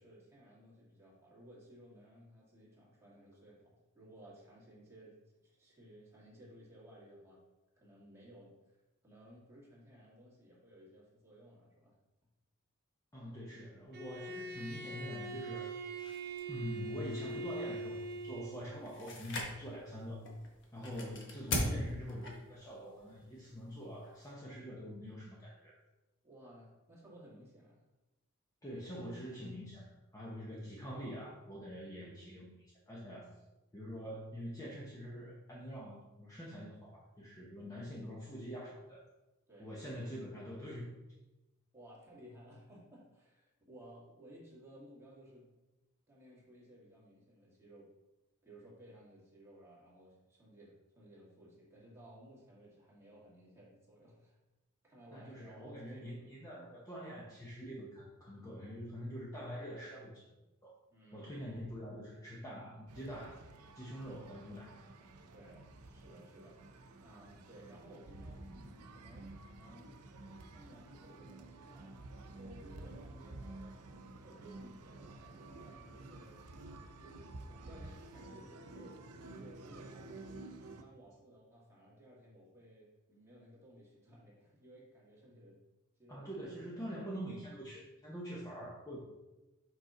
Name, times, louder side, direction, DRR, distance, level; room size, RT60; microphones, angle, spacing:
voice 1, 0.0-5.2 5.4-7.4 7.8-11.9 26.2-27.8 39.5-39.7 41.7-45.5 46.1-47.9 48.4-54.4 54.8-56.4 60.9-61.4 65.3-70.0 70.5-73.8 74.1-76.4 77.0-80.3 80.6-85.6 86.0-86.3 86.7-87.0, right 1 dB, 10° right, -6 dB, 2.1 m, -58 dB
voice 2, 13.1-15.7 16.5-20.2 20.7-25.8 28.6-32.5 32.9-33.3 33.7-39.0 39.6-41.0 55.1-60.4 60.6-60.8 61.1-63.4 63.7-64.7 86.1-89.0, equal, 15° left, -4 dB, 0.8 m, -45 dB
Bowed string instrument, 13.9-18.8, right 3 dB, 45° right, 0.6 m, -42 dB
sound 1, 15.9-24.3, left 1 dB, 55° left, 1.1 m, -42 dB
sound 2, 62.9-80.8, right 2 dB, 90° right, 0.6 m, -51 dB
5.6 x 5.3 x 3.8 m, 1.0 s
head